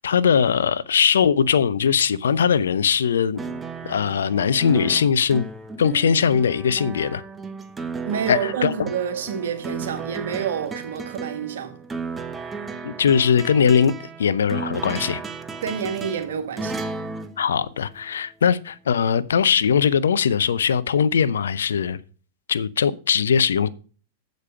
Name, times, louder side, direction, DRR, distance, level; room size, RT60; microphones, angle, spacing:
voice 1, 0.0-5.5 5.8-7.2 8.3-8.7 12.8-13.9 14.2-15.2 17.4-22.0 22.5-23.7, left 7 dB, 70° left, 0.5 m, -20 dB
sound 1, 3.4-18.3 19.5-19.6, right 4 dB, 15° right, 0.9 m, -34 dB
voice 2, 8.0-11.7 15.6-16.8, right 7 dB, 65° right, 1.7 m, -28 dB
8.1 x 5.2 x 6.8 m
figure-of-eight pair, 100°, 0 cm